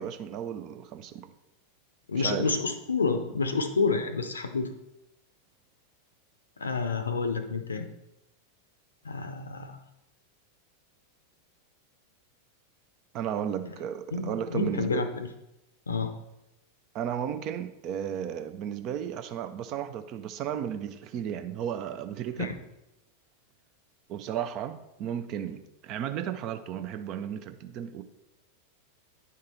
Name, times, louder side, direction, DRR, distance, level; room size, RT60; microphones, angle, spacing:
voice 1, 0.0-1.3 2.2-2.5 13.1-15.1 16.9-22.5 24.1-28.0, right 9 dB, 40° right, 0.5 m, -34 dB
voice 2, 2.1-4.7 6.6-7.9 9.0-9.8 13.6-13.7 14.1-15.3 15.9-16.1 22.4-22.5, left 4 dB, 75° left, 0.6 m, -29 dB
9.5 x 3.7 x 4.2 m
figure-of-eight pair, 90°, 0 cm